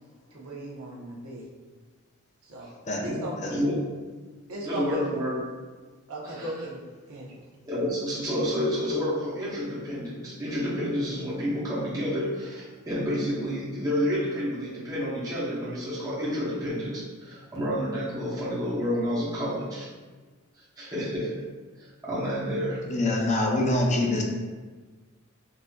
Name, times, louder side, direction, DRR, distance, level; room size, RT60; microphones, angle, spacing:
voice 1, 0.3-1.5 2.4-2.7 3.0-3.4 4.5-5.2 6.1-6.8 7.1-7.3, right 1 dB, 85° right, -4 dB, 0.8 m, -37 dB
voice 2, 3.0-3.8 4.6-5.4 6.2-6.5 7.7-19.9 20.8-21.4 21.8-22.8, equal, 15° right, -8 dB, 0.7 m, -29 dB
voice 3, 22.9-24.2, left 2 dB, 35° left, 0 dB, 0.4 m, -25 dB
3.9 x 2.4 x 2.2 m, 1.3 s
head